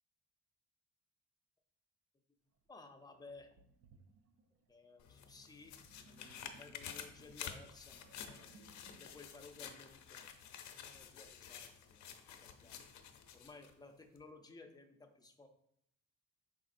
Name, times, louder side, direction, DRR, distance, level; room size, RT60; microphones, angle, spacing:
Sink (filling or washing), 2.6-2.7 3.3-10.6, right 4 dB, 55° right, 0.5 m, -66 dB
voice 1, 2.7-3.5 4.7-5.8 6.1-10.3 10.7-12.0 12.4-15.5, left 3 dB, 15° left, 5 dB, 0.5 m, -57 dB
sound 1, 5.0-13.7 14.2-14.3, left 8 dB, 70° left, 0.6 m, -51 dB
5.0 x 3.6 x 2.5 m, 0.73 s
cardioid pair, 90°, 30 cm